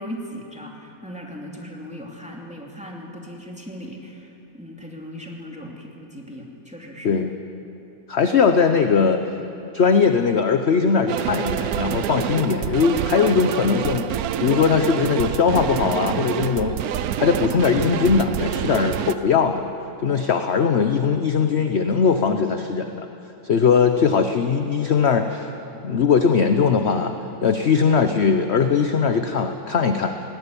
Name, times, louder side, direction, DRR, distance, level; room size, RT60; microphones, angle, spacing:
voice 1, 0.0-7.2, equal, 5° right, -1 dB, 2.7 m, -38 dB
voice 2, 8.1-9.2 9.7-14.1 14.4-19.6 20.0-23.1 23.4-25.5 25.8-27.1 27.4-30.2, left 6 dB, 50° left, 7 dB, 1.0 m, -20 dB
sound 1, 11.1-19.2, right 10 dB, 75° right, 1.2 m, -27 dB
19.5 x 18.0 x 9.8 m, 2.9 s
omnidirectional pair, 1.7 m